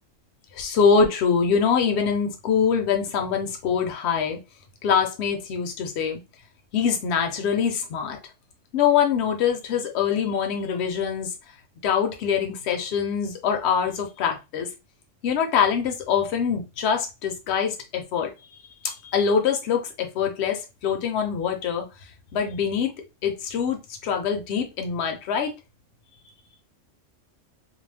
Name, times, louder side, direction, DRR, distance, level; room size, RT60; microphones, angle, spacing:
voice 1, 0.5-4.4 4.8-6.2 6.7-8.2 8.7-11.3 11.8-14.7 15.2-18.3 18.8-21.9 22.3-22.9 23.2-25.5, left 6 dB, 65° left, 3 dB, 0.9 m, -24 dB
2.4 x 2.1 x 3.3 m, 0.27 s
omnidirectional pair, 1.3 m